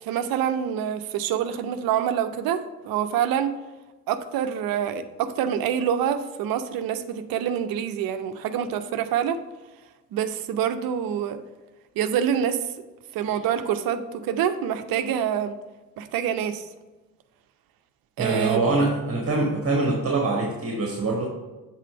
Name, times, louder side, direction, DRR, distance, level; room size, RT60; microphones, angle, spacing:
voice 1, 0.0-3.5 4.1-9.4 10.1-11.4 12.0-12.7 13.1-15.6 16.0-16.7 18.2-18.8, right 9 dB, 50° right, 9 dB, 0.7 m, -26 dB
voice 2, 18.2-21.3, right 3 dB, 30° right, 0 dB, 1.3 m, -24 dB
7.5 x 3.7 x 5.5 m, 1.2 s
figure-of-eight pair, 50°, 47 cm